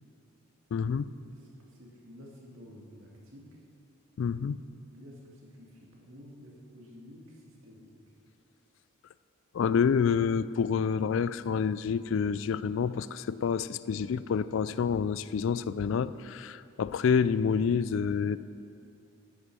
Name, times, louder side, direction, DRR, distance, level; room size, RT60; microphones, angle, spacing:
voice 1, 0.7-1.1 4.2-4.6 9.5-18.4, left 6 dB, 60° left, 16 dB, 0.3 m, -28 dB
voice 2, 1.3-3.6 4.9-8.1, left 1 dB, 70° right, -3 dB, 2.3 m, -51 dB
13.5 x 8.1 x 6.1 m, 2.5 s
head